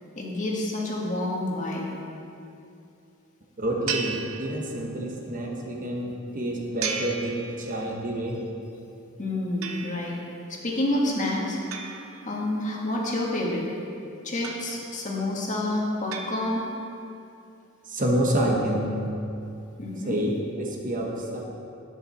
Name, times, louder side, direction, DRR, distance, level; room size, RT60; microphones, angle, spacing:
voice 1, 0.2-1.9 9.2-10.2 10.5-11.6 12.2-13.6 14.2-16.6 19.8-20.2, left 1 dB, 40° left, -3 dB, 1.8 m, -28 dB
voice 2, 3.6-8.5 17.8-19.0 20.0-21.4, right 1 dB, 40° right, 0 dB, 1.3 m, -28 dB
sound 1, 3.9-5.1 6.8-8.1 9.6-10.3 11.7-12.9 14.4-15.1 16.1-17.0, right 6 dB, 85° right, 0.8 m, -36 dB
10.5 x 9.7 x 4.3 m, 2.6 s
head